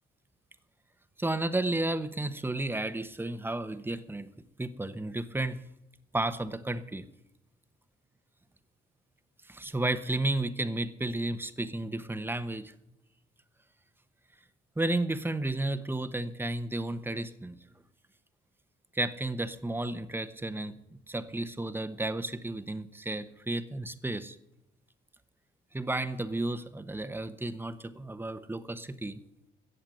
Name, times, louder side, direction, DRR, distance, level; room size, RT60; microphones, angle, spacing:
voice 1, 1.2-4.3 4.6-5.6 6.1-7.0 9.4-12.7 14.8-17.6 18.9-20.7 21.1-24.4 25.7-29.2, right 2 dB, 10° right, 12 dB, 1.0 m, -32 dB
15.0 x 7.8 x 9.1 m, 0.87 s
cardioid pair, 90°, 20 cm